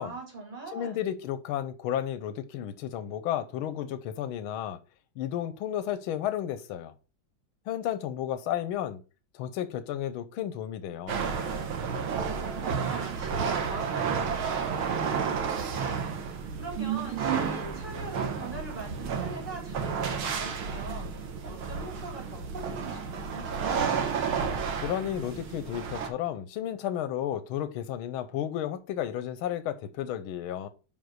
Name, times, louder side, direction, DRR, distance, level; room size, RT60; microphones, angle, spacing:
voice 1, 0.0-1.1 12.3-24.0, right 3 dB, 20° right, 3.9 m, -42 dB
voice 2, 0.7-4.8 5.2-6.9 7.7-9.0 9.3-11.2 24.8-30.7, left 11 dB, 85° left, 1.5 m, -32 dB
sound 1, 11.1-26.1, right 6 dB, 90° right, 2.1 m, -31 dB
5.8 x 5.2 x 6.4 m
omnidirectional pair, 2.2 m